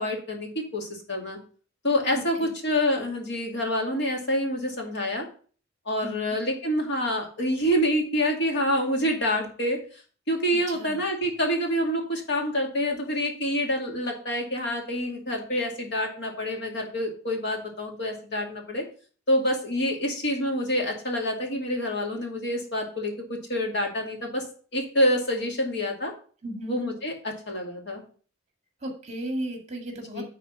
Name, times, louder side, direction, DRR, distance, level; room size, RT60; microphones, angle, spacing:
voice 1, 0.0-1.4 1.8-5.3 5.9-9.8 10.3-18.8 19.3-24.4 24.7-26.1 26.7-28.0 30.1-30.2, equal, 60° left, 1 dB, 2.2 m, -27 dB
voice 2, 2.1-2.5 6.0-6.4 10.7-11.0 26.4-26.8 28.8-30.2, right 1 dB, 35° right, 3 dB, 2.0 m, -35 dB
9.9 x 4.1 x 5.4 m, 0.42 s
head